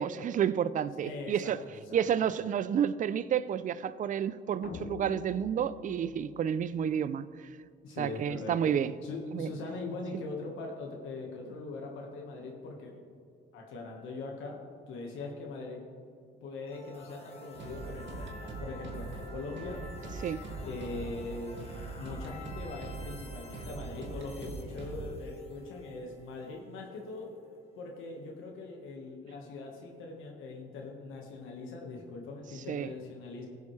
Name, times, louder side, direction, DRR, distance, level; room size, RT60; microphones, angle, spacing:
voice 1, 0.0-1.6 1.9-7.3 8.0-8.9 9.3-9.5 20.2-20.4 32.7-32.9, right 8 dB, 40° right, 0.4 m, -30 dB
voice 2, 1.0-2.3 7.8-8.7 9.0-13.2 13.5-14.6 14.9-15.8 16.4-19.8 20.6-21.6 21.9-27.3 27.8-33.5, left 3 dB, 90° left, 1.4 m, -41 dB
sound 1, 4.6-7.1, left 7 dB, 50° left, 0.7 m, -45 dB
sound 2, 16.7-28.5, left 2 dB, 30° left, 1.5 m, -50 dB
sound 3, 17.5-25.3, right 3 dB, 70° right, 1.8 m, -42 dB
16.0 x 7.2 x 3.2 m
cardioid pair, 90°, 20 cm